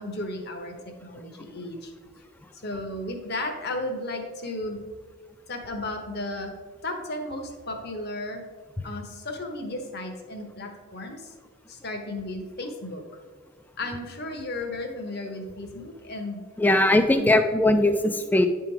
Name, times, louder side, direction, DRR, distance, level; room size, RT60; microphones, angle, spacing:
voice 1, 0.0-1.9 2.6-4.8 5.5-6.5 6.8-8.4 8.8-11.3 11.7-13.0 13.8-16.4 17.2-17.4, left 2 dB, 45° left, 4 dB, 1.0 m, -34 dB
voice 2, 16.6-18.5, left 1 dB, 10° left, 7 dB, 0.4 m, -20 dB
10.5 x 3.7 x 4.4 m, 1.5 s
head